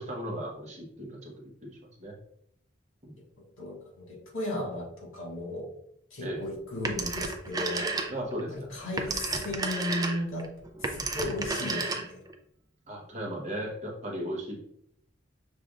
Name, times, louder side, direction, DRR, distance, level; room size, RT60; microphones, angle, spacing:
voice 1, 0.0-2.1 3.0-3.2 6.2-6.5 8.1-8.7 9.0-9.4 12.9-14.6, equal, 35° right, -1 dB, 1.0 m, -37 dB
voice 2, 3.6-5.6 6.1-7.9 8.5-10.5 10.8-12.2, left 1 dB, 85° left, -1 dB, 1.6 m, -35 dB
Telephone, 6.8-8.4 8.7-12.3, right 3 dB, 20° right, 0.4 m, -32 dB
6.2 x 3.3 x 2.4 m, 0.72 s
head